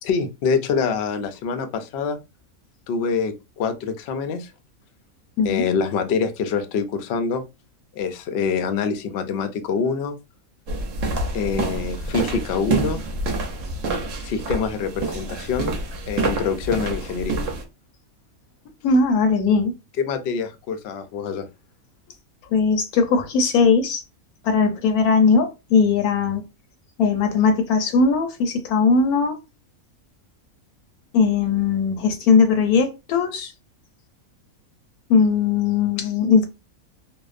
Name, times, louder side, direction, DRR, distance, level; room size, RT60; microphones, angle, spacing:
voice 1, 0.0-2.2 2.9-4.5 5.4-7.4 7.9-10.2 11.3-13.0 14.2-15.8 16.1-17.4 20.0-21.5, left 5 dB, 70° left, 0.6 m, -25 dB
sound 1, 10.7-17.6, right 3 dB, 65° right, 0.9 m, -27 dB
voice 2, 18.8-19.7 22.5-24.0 24.4-26.4 27.0-29.3 31.1-33.5 35.1-36.5, left 5 dB, 90° left, 1.1 m, -19 dB
2.6 x 2.0 x 2.4 m
omnidirectional pair, 1.5 m